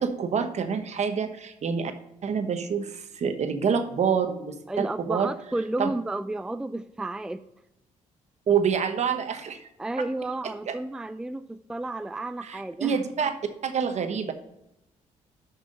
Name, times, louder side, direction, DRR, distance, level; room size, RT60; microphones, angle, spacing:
voice 1, 0.0-1.9 2.2-5.3 5.8-5.9 8.5-9.7 10.7-10.8 12.5-13.3 13.6-14.3, right 6 dB, 55° right, 8 dB, 1.1 m, -27 dB
voice 2, 4.7-7.4 9.8-13.0, right 2 dB, 5° right, 12 dB, 0.3 m, -32 dB
6.1 x 5.8 x 6.6 m, 0.86 s
cardioid pair, 75°, 14 cm